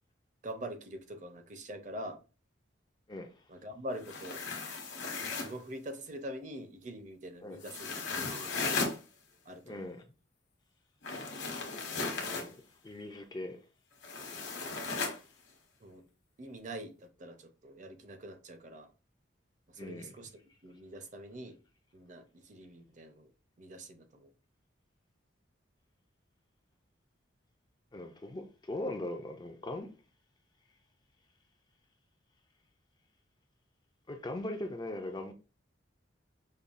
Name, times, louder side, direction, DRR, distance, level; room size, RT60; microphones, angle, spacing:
voice 1, 0.4-2.2 3.5-4.4 5.0-8.0 8.3-8.8 9.5-9.9 14.8-15.1 15.8-16.0 16.4-18.9 19.7-20.3 20.6-21.6 21.9-23.3 23.6-24.3, right 1 dB, 40° right, 0.6 m, -44 dB
voice 2, 3.1-3.4 7.4-7.7 9.6-10.0 12.3-12.6 12.8-13.6 19.8-20.2 27.9-29.9 34.1-35.3, left 1 dB, 20° left, 0.3 m, -40 dB
sound 1, 4.0-5.6 7.6-9.0 11.0-12.5 14.0-15.2, left 4 dB, 65° left, 1.1 m, -36 dB
5.4 x 2.2 x 2.4 m
head